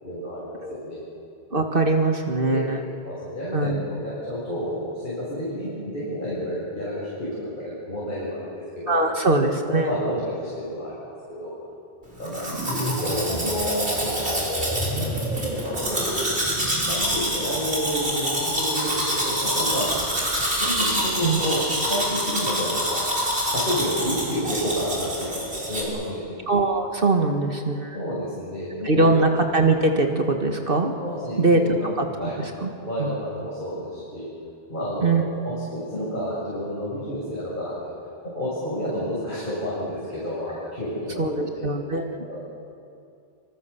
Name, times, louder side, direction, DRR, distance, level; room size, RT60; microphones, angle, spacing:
voice 1, 0.0-1.0 2.4-2.6 3.0-9.1 9.6-11.6 12.2-12.5 12.7-14.9 15.6-16.2 16.9-20.0 20.4-23.1 23.5-26.3 27.9-29.1 31.0-31.9 32.2-32.4 32.8-34.3 34.7-37.9 38.2-41.6 42.3-42.4, equal, 50° left, -7 dB, 6.8 m, -30 dB
voice 2, 1.5-2.8 3.5-3.8 8.9-9.9 21.2-21.4 26.5-28.0 28.8-30.9 31.4-31.6 32.0-32.1 32.6-32.7 33.0-33.1 35.0-35.2 41.2-42.0, right 3 dB, 60° right, 4 dB, 1.9 m, -21 dB
sound 1, 12.2-17.0, equal, 5° right, 6.9 m, -31 dB
Domestic sounds home sounds, 12.2-25.8, equal, 85° right, 5.9 m, -26 dB
26.0 x 25.0 x 7.1 m, 2.5 s
omnidirectional pair, 1.1 m